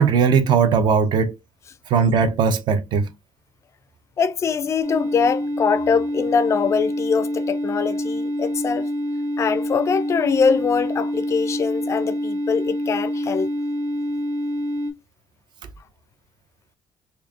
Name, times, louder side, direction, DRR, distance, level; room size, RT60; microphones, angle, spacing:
voice 1, 0.0-1.3 1.9-3.1, right 6 dB, 50° right, 0.6 m, -18 dB
voice 2, 4.2-8.9 9.4-13.5, left 6 dB, 30° left, 0.4 m, -22 dB
sound 1, 4.8-14.9, equal, 70° right, 2.0 m, -26 dB
4.5 x 2.7 x 2.7 m
cardioid pair, 175°, 10 cm